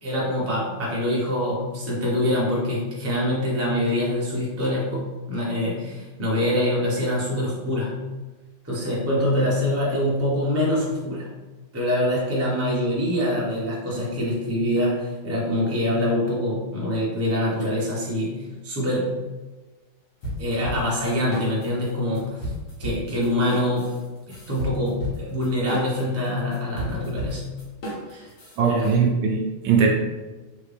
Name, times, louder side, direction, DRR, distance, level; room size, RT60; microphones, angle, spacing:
voice 1, 0.0-7.9 8.6-11.3 11.7-18.3 18.6-19.1 20.4-22.4 22.8-23.9 24.3-27.4 28.1-28.3 28.7-29.0, left 1 dB, 15° right, -6 dB, 0.4 m, -25 dB
sound 1, 20.2-21.9 22.1-28.9, equal, 85° left, 2.2 m, -33 dB
voice 2, 28.6-29.9, right 6 dB, 75° right, 1 dB, 1.4 m, -20 dB
4.2 x 3.3 x 3.4 m, 1.2 s
omnidirectional pair, 2.4 m